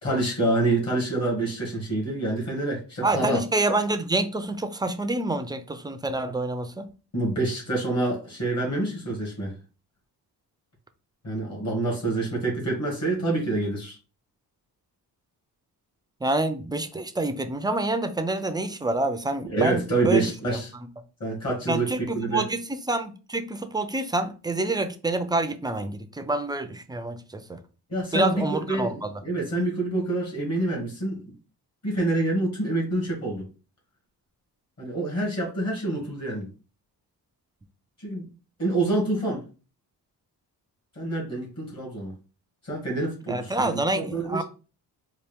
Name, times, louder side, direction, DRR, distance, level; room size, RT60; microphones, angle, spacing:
voice 1, 0.0-3.4 7.1-9.5 11.2-14.0 19.5-20.7 21.2-21.9 22.1-22.5 27.9-31.2 31.8-33.5 34.8-36.5 38.0-38.3 38.6-39.4 41.0-42.1 42.6-44.4, right 2 dB, 40° left, 2.0 m, -27 dB
voice 2, 3.0-6.9 16.2-20.6 21.7-27.6 28.1-29.1 43.3-44.4, right 2 dB, 10° right, 0.4 m, -27 dB
4.3 x 2.4 x 3.4 m
cardioid pair, 105°, 40 cm